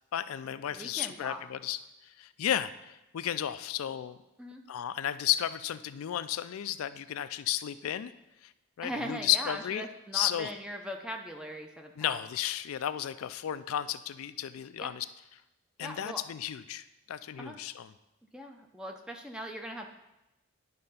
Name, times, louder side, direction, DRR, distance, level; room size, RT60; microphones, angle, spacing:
voice 1, 0.1-1.8 2.0-4.2 4.7-8.1 8.4-8.5 8.8-9.9 10.1-10.5 12.0-15.1 15.8-17.9, left 11 dB, 90° left, 13 dB, 0.4 m, -33 dB
voice 2, 0.7-1.4 4.4-4.6 8.8-12.2 14.8-14.9 15.8-16.2 17.4-17.6 18.3-19.9, equal, 5° right, 3 dB, 0.6 m, -40 dB
10.5 x 3.8 x 5.5 m, 0.94 s
head